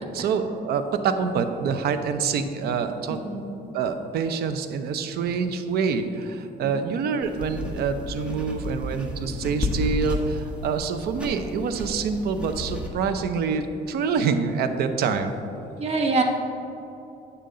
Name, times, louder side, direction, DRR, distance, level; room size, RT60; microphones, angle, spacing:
voice 1, 0.1-3.2 3.7-15.3, right 5 dB, 70° right, 8 dB, 0.7 m, -26 dB
voice 2, 3.1-3.4 6.6-6.9 15.8-16.2, right 3 dB, 40° right, 2 dB, 1.2 m, -25 dB
sound 1, 7.2-12.9, left 1 dB, 5° right, 1.2 m, -32 dB
8.7 x 6.9 x 3.8 m, 2.9 s
cardioid pair, 110°, 17 cm